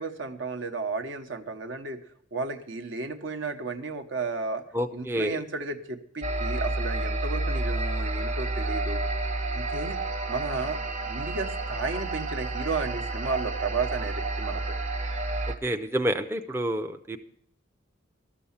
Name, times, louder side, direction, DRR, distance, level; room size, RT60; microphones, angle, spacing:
voice 1, 0.0-2.0 2.3-4.6 4.9-9.0 9.5-10.0 10.3-10.8 11.0-14.8, right 4 dB, 70° right, 6 dB, 0.9 m, -33 dB
voice 2, 4.7-5.4 15.6-17.2, equal, 10° right, 5 dB, 0.4 m, -28 dB
sound 1, 6.2-15.6, right 2 dB, 35° right, 0.8 m, -30 dB
12.5 x 6.8 x 7.1 m, 0.66 s
head